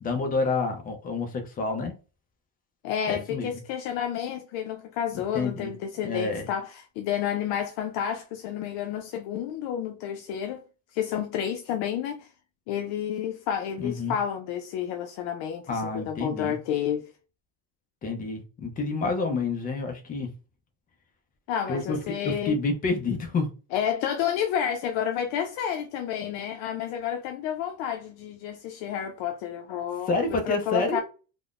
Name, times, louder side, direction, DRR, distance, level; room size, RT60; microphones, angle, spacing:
voice 1, 0.0-1.9 3.1-3.5 5.3-5.7 6.0-6.5 13.8-14.2 15.7-16.6 18.0-20.3 21.7-23.5 30.1-31.0, left 3 dB, 20° left, 0.4 m, -28 dB
voice 2, 2.8-10.6 10.9-12.3 12.7-17.1 21.5-22.6 23.7-31.0, left 9 dB, 80° left, 0.6 m, -30 dB
3.6 x 2.0 x 2.4 m
cardioid pair, 170°, 44 cm